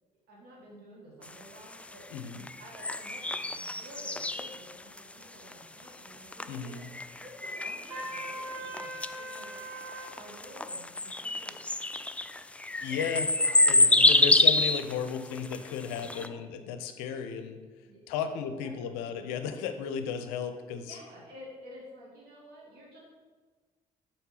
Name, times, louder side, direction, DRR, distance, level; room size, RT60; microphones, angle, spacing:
voice 1, 0.3-2.0 2.6-9.5 10.1-11.5 12.5-14.3 16.0-16.4 17.9-18.3 18.6-19.3 20.8-23.0, equal, 55° right, -3 dB, 2.6 m, -51 dB
sound 1, 1.2-16.3, left 2 dB, 5° left, 0.3 m, -27 dB
voice 2, 2.1-2.5 6.5-6.9 12.8-13.3 13.6-17.6 18.1-21.0, left 7 dB, 65° left, 9 dB, 0.6 m, -35 dB
Trumpet, 7.9-10.1, right 1 dB, 80° right, 0.9 m, -40 dB
7.9 x 4.5 x 5.6 m, 1.3 s
figure-of-eight pair, 45°, 19 cm